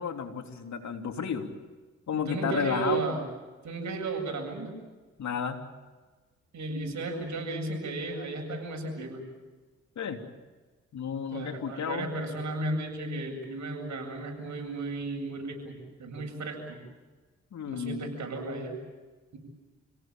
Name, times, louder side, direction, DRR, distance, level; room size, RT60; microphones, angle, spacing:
voice 1, 0.0-1.5 2.1-3.1 5.2-5.6 9.9-10.2 10.9-12.1 17.5-18.1, left 7 dB, 75° left, 5 dB, 3.3 m, -32 dB
voice 2, 2.1-3.2 3.6-4.8 6.5-9.2 11.3-16.8 17.7-18.7, right 2 dB, 70° right, 2 dB, 8.0 m, -34 dB
29.0 x 18.0 x 9.1 m, 1.3 s
cardioid pair, 70°, 29 cm